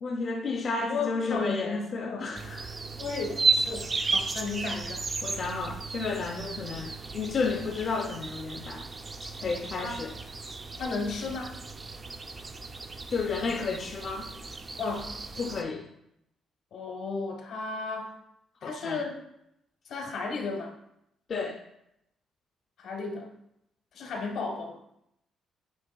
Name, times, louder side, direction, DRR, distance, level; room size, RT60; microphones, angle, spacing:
voice 1, 0.0-2.7 5.2-8.9 9.2-10.1 13.1-14.3 15.4-15.9 18.6-19.0 21.3-21.6, left 4 dB, 50° left, 2 dB, 0.4 m, -32 dB
voice 2, 0.8-2.3 3.0-5.1 9.4-10.0 10.8-11.6 14.8-15.1 16.7-18.1 18.6-19.1 19.9-20.7 22.8-23.3 23.9-24.8, left 4 dB, 75° left, 3 dB, 0.8 m, -34 dB
sound 1, 2.3-15.6, right 4 dB, 35° right, 0.4 m, -34 dB
7.7 x 3.0 x 2.2 m, 0.79 s
cardioid pair, 90°, 0 cm